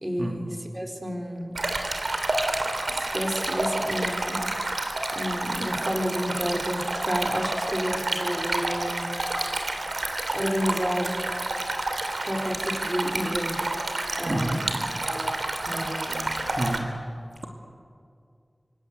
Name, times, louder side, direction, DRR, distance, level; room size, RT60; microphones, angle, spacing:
voice 1, 0.0-1.6 2.9-4.4 5.1-9.0 10.3-11.2 12.2-15.4 15.7-16.2, equal, 20° right, 3 dB, 4.0 m, -31 dB
Stream, 1.5-16.8, right 2 dB, 85° right, 3.1 m, -29 dB
voice 2, 14.3-14.6 16.6-16.9, right 1 dB, 55° right, 2 dB, 2.6 m, -28 dB
26.0 x 26.0 x 8.2 m, 2.4 s
wide cardioid pair, 60°, 0 cm